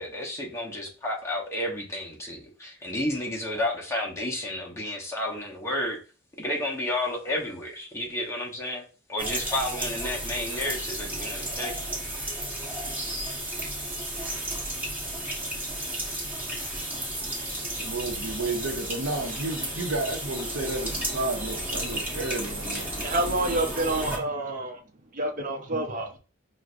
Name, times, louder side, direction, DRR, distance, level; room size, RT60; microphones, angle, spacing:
voice 1, 0.0-6.0 6.4-8.8 9.1-11.8, left 1 dB, 15° left, 0.9 m, -31 dB
sound 1, 9.2-24.2, right 1 dB, 10° right, 1.2 m, -33 dB
voice 2, 17.6-23.1, right 2 dB, 75° right, 0.7 m, -32 dB
voice 3, 22.9-24.8 25.1-26.2, right 2 dB, 40° right, 0.7 m, -28 dB
6.0 x 2.2 x 2.5 m
head